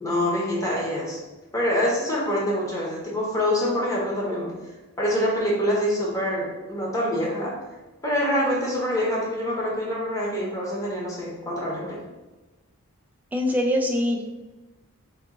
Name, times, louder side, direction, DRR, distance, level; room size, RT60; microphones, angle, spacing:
voice 1, 0.0-1.2 1.5-4.5 5.0-7.5 8.0-12.0, equal, 15° left, -5 dB, 0.9 m, -25 dB
voice 2, 13.3-14.2, left 1 dB, 10° right, 1 dB, 0.3 m, -23 dB
3.6 x 2.5 x 3.7 m, 1.1 s
head